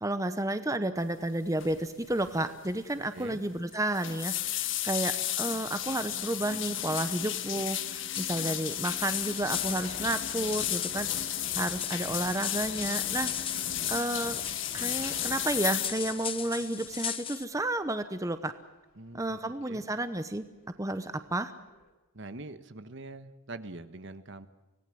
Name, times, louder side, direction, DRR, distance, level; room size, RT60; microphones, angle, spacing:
voice 1, 0.0-13.3 13.9-14.4 14.7-18.5 19.1-20.4 20.8-21.5, right 1 dB, 15° right, 10 dB, 0.9 m, -31 dB
sound 1, 1.6-1.8 2.1-2.4 2.7-2.8 3.7-15.9, left 12 dB, 60° left, 1.6 m, -33 dB
sound 2, 4.8-5.1 6.2-6.3 7.0-18.4 19.1-19.2 20.0-20.1 20.3-21.9, left 2 dB, 45° left, 3.1 m, -49 dB
sound 3, 7.8-17.4, left 8 dB, 25° left, 0.9 m, -39 dB
voice 2, 18.9-19.4 19.7-19.9 22.1-24.5, right 2 dB, 60° right, 11 dB, 1.3 m, -43 dB
25.0 x 18.5 x 7.8 m, 1.1 s
head